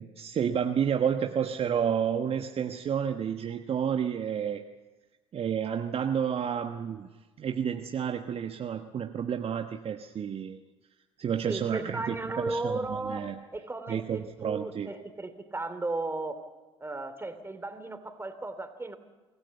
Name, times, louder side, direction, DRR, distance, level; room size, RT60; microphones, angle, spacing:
voice 1, 0.0-4.6 5.3-7.1 7.4-10.6 11.2-13.4 13.9-14.9, right 8 dB, 40° right, 6 dB, 1.3 m, -30 dB
voice 2, 11.4-16.4 16.8-19.0, right 2 dB, 15° right, 9 dB, 3.1 m, -35 dB
25.0 x 16.5 x 8.3 m, 1.2 s
hypercardioid pair, 60°, 15 cm